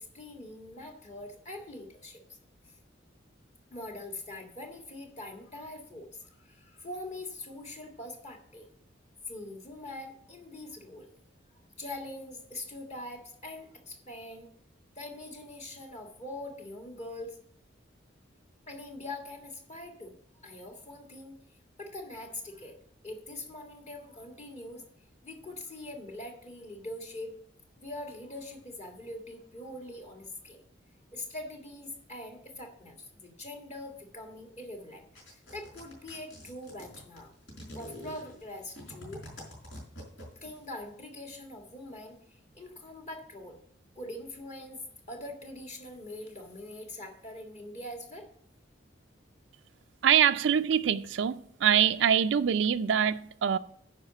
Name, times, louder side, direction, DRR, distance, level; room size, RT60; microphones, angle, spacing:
voice 1, 0.0-2.4 2.6-2.8 3.7-8.7 9.2-11.1 11.8-14.5 14.9-17.4 18.7-20.2 20.4-21.3 21.8-22.8 23.0-24.8 25.2-27.4 27.8-30.6 31.1-37.3 37.7-39.3 40.3-43.6 43.9-44.8 45.1-48.3, left 1 dB, 35° left, 1.8 m, -43 dB
sound 1, 35.1-40.6, equal, 80° left, 4.8 m, -46 dB
voice 2, 50.0-53.6, right 8 dB, 70° right, 0.4 m, -24 dB
10.5 x 5.0 x 6.6 m
head